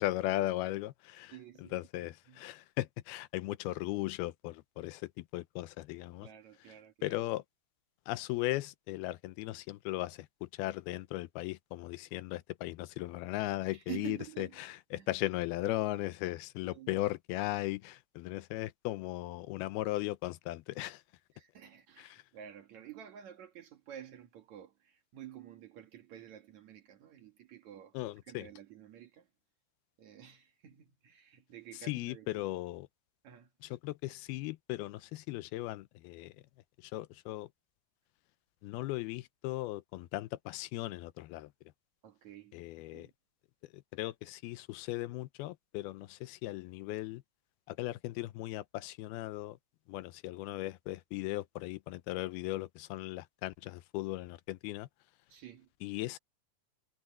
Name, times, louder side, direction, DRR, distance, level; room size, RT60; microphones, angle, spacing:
voice 1, 0.0-6.3 7.0-7.4 8.1-21.0 22.0-22.2 27.9-28.5 31.8-32.9 33.6-36.3 36.8-37.5 38.6-41.5 42.5-43.1 43.6-47.2 47.7-49.6 49.9-54.9 55.8-56.2, left 17 dB, 85° left, 2.5 m, -37 dB
voice 2, 1.3-2.4 6.2-7.2 13.7-14.6 15.0-15.1 16.6-17.0 21.3-28.0 28.3-29.3 30.0-32.4 33.2-33.5 42.0-43.1 55.3-55.7, right 11 dB, 55° right, 2.4 m, -50 dB
omnidirectional pair, 4.5 m